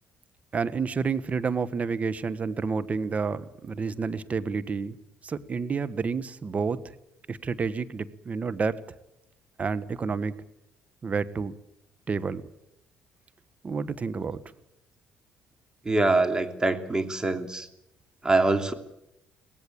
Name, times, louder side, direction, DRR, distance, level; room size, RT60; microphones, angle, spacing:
voice 1, 0.5-5.0 5.2-6.8 7.3-8.8 9.6-10.3 11.0-11.5 12.1-12.4 13.6-14.4, right 5 dB, 40° right, 13 dB, 1.5 m, -29 dB
voice 2, 15.8-17.7 18.2-18.7, right 2 dB, 20° right, 7 dB, 3.0 m, -24 dB
24.0 x 18.0 x 8.8 m, 0.85 s
hypercardioid pair, 60°, 4 cm